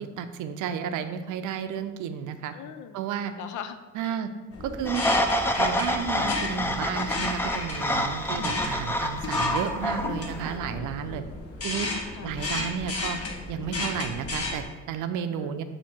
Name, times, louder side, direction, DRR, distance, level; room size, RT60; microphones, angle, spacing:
voice 1, 0.0-2.5 2.9-3.3 3.9-4.3 4.6-5.0 5.6-11.2 11.6-11.9 12.2-13.2 13.5-15.6, right 8 dB, 85° right, 9 dB, 0.5 m, -32 dB
voice 2, 1.5-1.9 2.5-3.0 3.3-4.2 4.6-5.0 8.3-8.6 10.4-11.4 12.1-12.3 15.3-15.6, left 8 dB, 75° left, 9 dB, 0.5 m, -43 dB
sound 1, 4.5-14.6, left 2 dB, 50° left, 1.2 m, -34 dB
sound 2, 4.9-10.6, equal, 10° left, 0.4 m, -28 dB
8.3 x 2.8 x 4.3 m, 1.2 s
cardioid pair, 90°, 30 cm